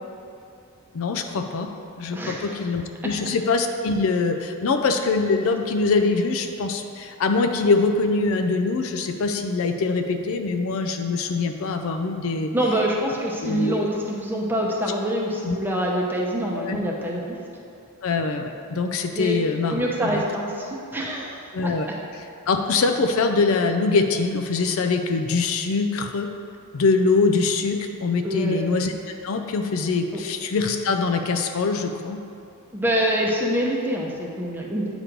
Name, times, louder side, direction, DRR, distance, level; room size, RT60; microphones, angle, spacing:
voice 1, 0.9-1.7 2.0-12.5 13.4-13.9 15.5-15.6 16.5-16.8 18.0-20.2 21.5-21.9 22.5-26.3 26.7-28.9 29.2-32.2, left 4 dB, 65° left, 5 dB, 0.4 m, -23 dB
voice 2, 2.1-2.6 12.5-17.4 19.1-19.3 19.7-21.7 28.2-28.6 30.1-30.2 32.7-34.9, equal, 10° right, -2 dB, 0.7 m, -25 dB
8.9 x 3.1 x 5.1 m, 2.6 s
head